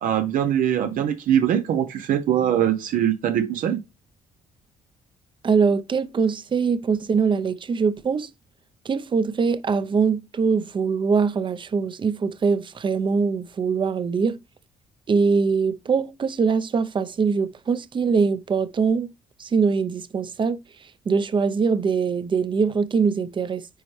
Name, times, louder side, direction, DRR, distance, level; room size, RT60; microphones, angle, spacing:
voice 1, 0.0-3.8, right 10 dB, 75° right, 0.8 m, -22 dB
voice 2, 5.4-8.3 8.8-14.4 15.1-19.1 19.4-20.6 21.1-23.7, right 5 dB, 35° right, 0.7 m, -22 dB
9.3 x 4.4 x 3.2 m
cardioid pair, 105°, 14 cm